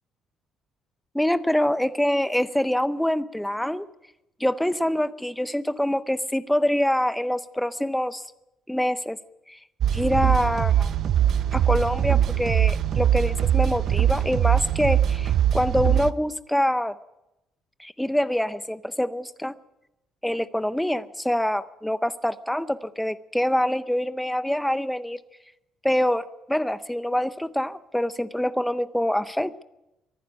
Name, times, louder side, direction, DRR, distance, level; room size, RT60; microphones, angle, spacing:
voice 1, 1.1-3.9 4.4-8.2 8.7-9.2 9.5-9.6 9.9-10.9 11.5-17.0 17.8-19.5 20.2-25.2 25.8-29.6, left 1 dB, 5° left, 14 dB, 0.7 m, -25 dB
sound 1, 9.8-16.1, right 10 dB, 50° right, 0.7 m, -22 dB
23.5 x 11.5 x 9.6 m, 0.93 s
cardioid pair, 155°, 0 cm